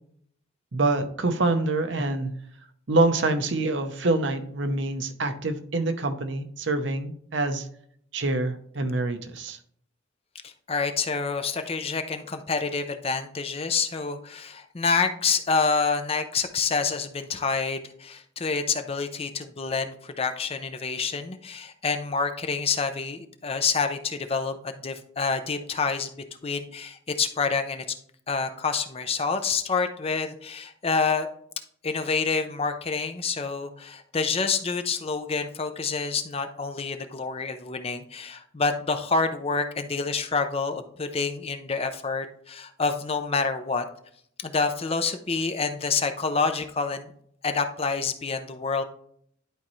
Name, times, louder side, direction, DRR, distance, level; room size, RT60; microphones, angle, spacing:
voice 1, 0.7-2.3 2.9-7.7 8.1-9.6, right 2 dB, 60° right, 8 dB, 0.8 m, -26 dB
voice 2, 10.4-26.1 26.4-27.8 28.3-31.3 31.8-43.8 44.4-47.1 47.4-48.8, left 4 dB, 30° left, 8 dB, 0.5 m, -27 dB
11.0 x 4.2 x 3.1 m, 0.64 s
head